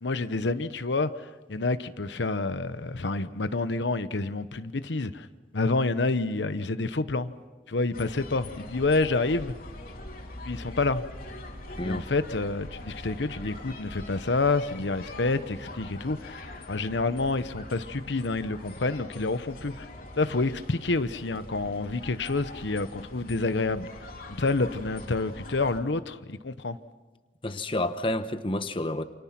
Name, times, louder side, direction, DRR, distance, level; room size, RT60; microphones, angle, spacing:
voice 1, 0.0-5.3 5.5-7.3 7.7-9.6 10.4-11.0 11.8-16.4 16.7-19.9 20.2-23.9 24.3-26.8, left 3 dB, 85° left, 1.0 m, -28 dB
sound 1, 7.9-25.8, left 1 dB, 55° left, 3.6 m, -43 dB
voice 2, 27.4-29.0, left 1 dB, 30° left, 1.1 m, -29 dB
28.5 x 27.5 x 6.0 m
head